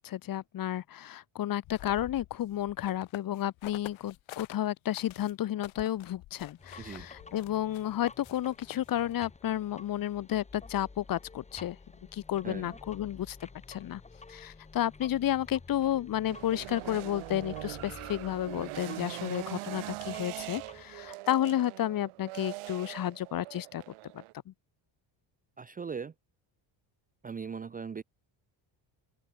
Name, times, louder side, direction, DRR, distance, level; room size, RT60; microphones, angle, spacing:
voice 1, 0.0-11.8 12.1-14.0 14.3-23.8 24.1-24.5, left 12 dB, 45° left, 2.1 m, -32 dB
sound 1, 1.6-4.6 4.9-9.1, left 17 dB, 70° left, 2.9 m, -47 dB
sound 2, 6.6-21.1, left 4 dB, 15° left, 4.2 m, -51 dB
voice 2, 6.8-7.1 12.4-12.8 25.6-26.1 27.2-28.0, right 6 dB, 15° right, 0.7 m, -39 dB
sound 3, 16.2-24.3, right 20 dB, 85° right, 2.4 m, -42 dB
open air
cardioid pair, 180°, 48 cm